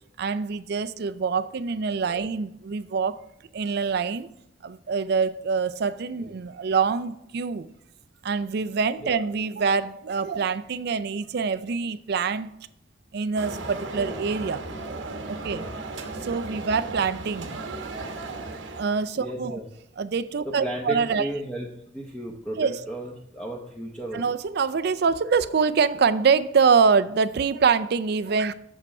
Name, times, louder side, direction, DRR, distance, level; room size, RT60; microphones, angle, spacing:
voice 1, 0.2-3.2 3.5-4.3 4.6-7.7 8.2-12.5 13.1-14.7 15.3-15.6 16.2-17.6 18.8-19.6 20.0-21.3 22.6-22.9 24.1-28.5, right 5 dB, 60° right, 14 dB, 0.4 m, -25 dB
sound 1, 13.4-19.1, right 3 dB, 80° right, 1.0 m, -36 dB
voice 2, 13.9-14.2 15.4-15.7 16.5-16.7 19.2-19.7 20.4-24.2, right 1 dB, 5° left, -2 dB, 0.8 m, -35 dB
7.3 x 5.3 x 5.3 m, 0.77 s
head